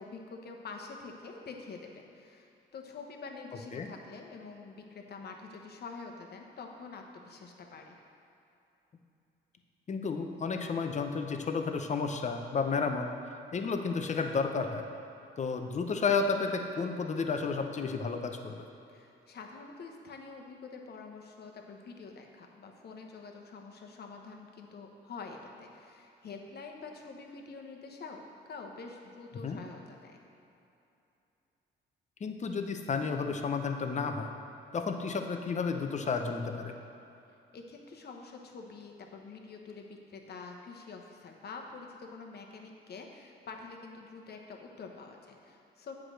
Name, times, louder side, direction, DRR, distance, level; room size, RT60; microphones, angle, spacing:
voice 1, 0.0-8.0 18.9-28.2 28.5-30.2 37.5-45.9, left 4 dB, 55° left, 2 dB, 1.0 m, -46 dB
voice 2, 9.9-13.1 13.5-14.8 15.4-18.6 29.4-29.6 32.2-34.3 34.7-36.7, left 5 dB, 35° left, 5 dB, 0.7 m, -32 dB
8.1 x 4.8 x 6.4 m, 2.8 s
cardioid pair, 90°, 20 cm